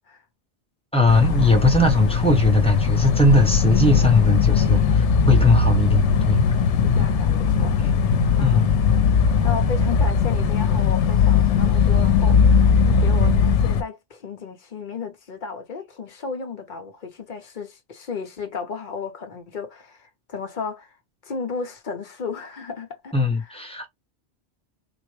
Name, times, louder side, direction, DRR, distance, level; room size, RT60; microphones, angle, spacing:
voice 1, 0.9-4.8 5.3-6.4 8.4-8.7 23.1-23.9, left 2 dB, 5° left, 0.8 m, -19 dB
sound 1, 1.1-13.8, left 6 dB, 90° left, 0.9 m, -19 dB
voice 2, 4.5-4.9 7.0-7.8 8.4-8.7 9.4-20.9 21.2-23.1 23.4-23.6, left 5 dB, 45° left, 0.8 m, -34 dB
3.9 x 2.1 x 3.1 m
omnidirectional pair, 1.2 m